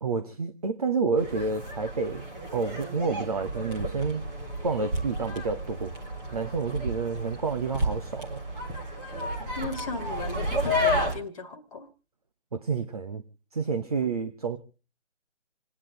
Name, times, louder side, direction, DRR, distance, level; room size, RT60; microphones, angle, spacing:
voice 1, 0.0-2.2 2.5-4.2 4.6-5.9 6.3-8.4 12.5-13.2 13.5-14.6, right 4 dB, 30° right, 8 dB, 0.9 m, -29 dB
sound 1, 1.2-11.2, equal, 5° right, 1.0 m, -32 dB
voice 2, 9.4-11.9, left 3 dB, 25° left, 6 dB, 1.8 m, -37 dB
27.5 x 10.0 x 3.8 m, 0.35 s
figure-of-eight pair, 155°, 37 cm